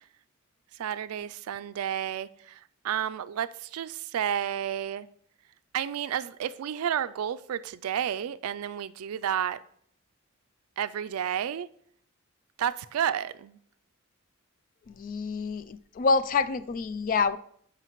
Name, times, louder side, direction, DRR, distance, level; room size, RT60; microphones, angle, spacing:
voice 1, 0.8-2.6 2.8-5.1 5.7-9.6 10.8-11.7 12.6-13.6, right 9 dB, 80° right, 0.3 m, -31 dB
voice 2, 14.9-17.4, left 4 dB, 40° left, 0.3 m, -27 dB
13.5 x 4.9 x 3.0 m
head